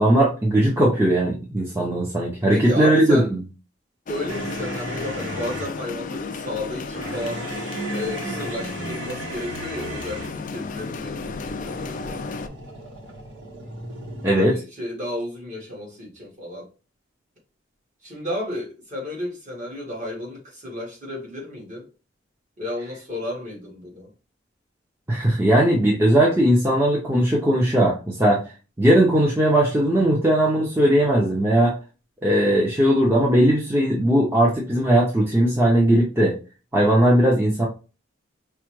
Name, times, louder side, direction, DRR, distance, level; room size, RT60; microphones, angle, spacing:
voice 1, 0.0-3.4 14.2-14.6 25.1-28.4 28.8-31.8 32.2-36.3 36.7-37.6, right 1 dB, 15° right, 0.6 m, -18 dB
voice 2, 2.5-3.3 4.1-7.4 7.9-12.2 14.3-16.7 18.0-21.9 22.6-24.1, left 1 dB, 40° right, 1.5 m, -33 dB
sound 1, 4.1-12.5, left 4 dB, 45° left, 0.3 m, -34 dB
sound 2, 4.3-5.8 6.9-10.4 11.4-14.4, right 2 dB, 80° right, 1.0 m, -35 dB
4.7 x 2.1 x 3.0 m
head